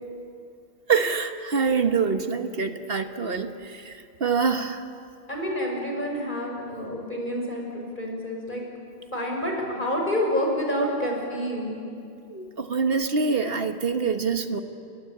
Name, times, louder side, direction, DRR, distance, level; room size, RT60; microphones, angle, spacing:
voice 1, 0.9-4.9 12.3-14.6, right 5 dB, 70° right, 7 dB, 1.6 m, -25 dB
voice 2, 5.3-8.6 9.1-11.7, equal, 55° left, 0 dB, 6.1 m, -28 dB
30.0 x 22.5 x 8.7 m, 2.5 s
omnidirectional pair, 1.0 m